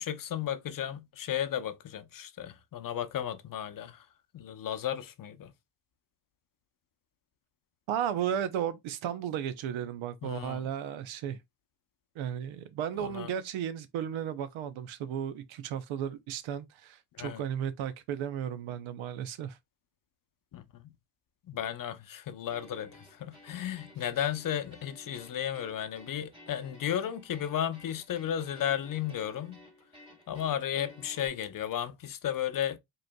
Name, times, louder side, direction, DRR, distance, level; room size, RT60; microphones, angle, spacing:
voice 1, 0.0-4.0 4.3-5.5 10.2-10.7 13.0-13.3 17.2-17.4 20.5-20.9 21.5-29.6 30.3-32.8, left 10 dB, 45° left, 0.7 m, -34 dB
voice 2, 7.9-11.4 12.2-19.6, right 9 dB, 75° right, 0.8 m, -34 dB
sound 1, 22.5-31.3, left 1 dB, 10° right, 2.3 m, -55 dB
4.9 x 3.2 x 2.2 m
cardioid pair, 105°, 47 cm